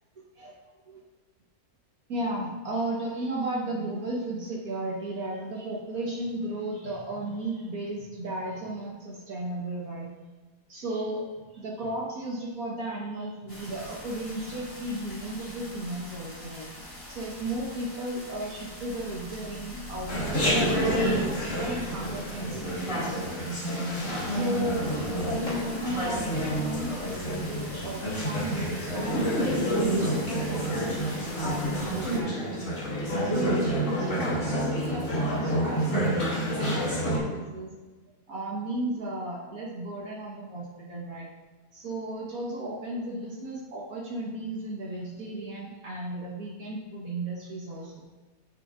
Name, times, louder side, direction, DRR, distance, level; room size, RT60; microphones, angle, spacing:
voice 1, 2.1-10.1 10.7-16.7 17.1-23.6 24.2-24.9 25.2-32.7 33.1-37.7 38.3-41.3 41.7-48.0, right 1 dB, 70° right, -4 dB, 1.8 m, -35 dB
sound 1, 13.5-32.2, equal, 20° left, 2.2 m, -43 dB
Chatter, 20.1-37.2, equal, 55° left, 3.0 m, -28 dB
10.5 x 8.3 x 2.5 m, 1.2 s
omnidirectional pair, 1.6 m